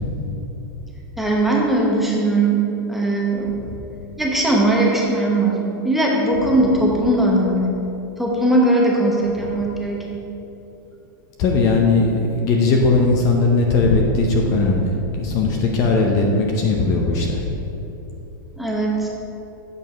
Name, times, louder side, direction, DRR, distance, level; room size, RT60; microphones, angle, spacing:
voice 1, 1.2-2.6 2.9-3.5 4.2-5.5 5.8-7.7 8.2-10.0 18.6-19.1, right 1 dB, ahead, -3 dB, 0.9 m, -19 dB
voice 2, 11.4-17.4, left 3 dB, 30° left, 1 dB, 0.7 m, -18 dB
8.0 x 4.7 x 5.5 m, 2.9 s
supercardioid pair, 165°, 11 cm